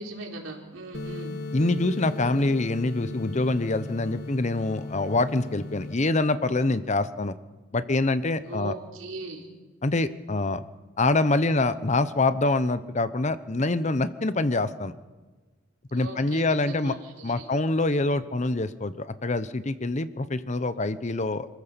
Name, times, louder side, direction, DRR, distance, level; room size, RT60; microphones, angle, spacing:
voice 1, 0.0-1.3 8.5-9.5 15.9-17.5, right 2 dB, 85° right, 0 dB, 4.2 m, -39 dB
sound 1, 0.9-5.9, left 2 dB, 55° left, 1.3 m, -36 dB
voice 2, 1.5-7.3 7.7-8.7 9.8-10.6 11.0-14.9 15.9-16.9 17.2-21.5, left 2 dB, 35° left, 13 dB, 0.8 m, -25 dB
25.5 x 14.5 x 6.9 m, 1.3 s
head